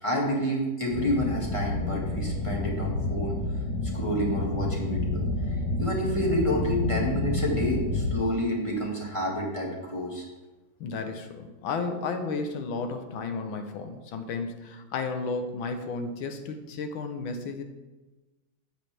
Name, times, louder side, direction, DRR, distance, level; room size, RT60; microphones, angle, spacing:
voice 1, 0.0-3.4 3.9-5.2 5.8-10.2, equal, 15° left, -2 dB, 1.6 m, -29 dB
sound 1, 0.9-8.1, left 2 dB, 55° left, 1.9 m, -29 dB
voice 2, 10.8-17.6, left 4 dB, 75° left, 7 dB, 1.6 m, -33 dB
9.7 x 7.9 x 3.4 m, 1.2 s
omnidirectional pair, 2.2 m